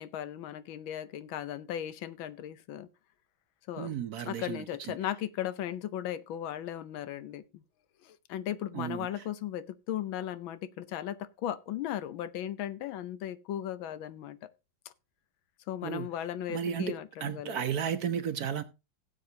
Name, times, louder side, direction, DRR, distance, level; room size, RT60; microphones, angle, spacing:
voice 1, 0.0-2.9 3.7-3.9 4.2-7.6 8.0-14.5 15.7-17.6, left 11 dB, 85° left, 1.5 m, -37 dB
voice 2, 3.8-4.9 8.7-9.2 15.8-16.1 16.5-16.9 17.2-18.6, right 8 dB, 65° right, 1.0 m, -34 dB
17.0 x 7.7 x 2.8 m
omnidirectional pair, 2.1 m